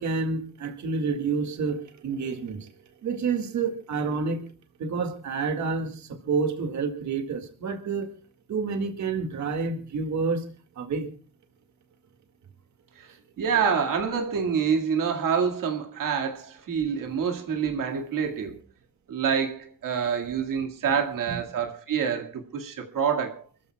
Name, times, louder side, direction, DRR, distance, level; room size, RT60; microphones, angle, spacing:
voice 1, 0.0-2.7 3.0-4.4 4.8-8.1 8.5-10.4 10.8-11.1 21.3-21.4, right 4 dB, 60° right, 2.1 m, -29 dB
voice 2, 13.0-18.6 19.1-23.4, right 7 dB, 75° right, 2.1 m, -27 dB
29.5 x 14.5 x 2.3 m
wide cardioid pair, 170°, 32 cm